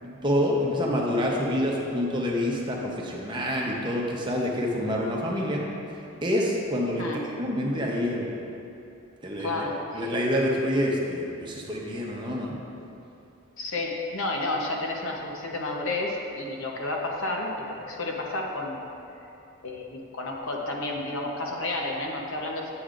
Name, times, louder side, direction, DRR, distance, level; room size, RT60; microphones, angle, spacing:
voice 1, 0.0-5.7 6.2-8.3 9.2-9.5 9.9-12.6, equal, 20° right, -3 dB, 0.8 m, -27 dB
voice 2, 9.4-10.1 13.6-18.8 19.6-22.7, left 2 dB, 65° left, 0 dB, 0.9 m, -31 dB
9.7 x 7.8 x 2.5 m, 2.8 s
head